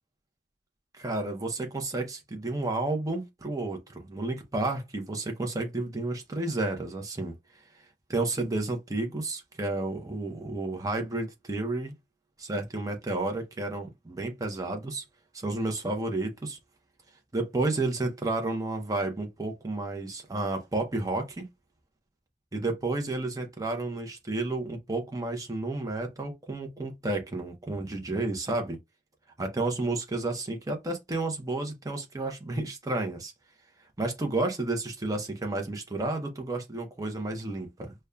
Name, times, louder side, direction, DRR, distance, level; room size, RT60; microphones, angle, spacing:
voice 1, 0.9-7.3 8.1-12.0 12.4-15.0 15.3-16.6 17.3-21.5 22.5-28.8 29.4-33.3 34.0-37.9, right 2 dB, 20° right, 0.6 m, -31 dB
5.1 x 2.2 x 2.3 m
head